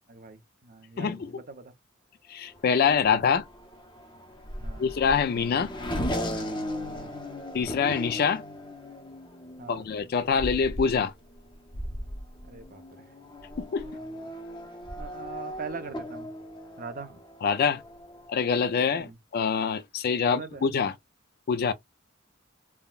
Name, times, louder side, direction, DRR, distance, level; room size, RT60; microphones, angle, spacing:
voice 1, 0.1-1.7 4.6-4.8 6.9-7.1 9.6-9.9 12.5-13.0 13.8-14.3 15.0-16.3 16.8-17.2 19.0-19.2 20.2-20.7, right 4 dB, 45° right, 0.7 m, -42 dB
voice 2, 1.0-1.4 2.3-3.4 4.8-5.7 7.5-8.4 9.7-11.1 13.6-13.9 17.4-17.8 18.3-20.9 21.5-21.7, left 6 dB, 55° left, 0.3 m, -25 dB
Race car auto racing / Accelerating revving vroom, 2.5-18.7, equal, 25° left, 0.7 m, -38 dB
3.4 x 2.2 x 2.3 m
head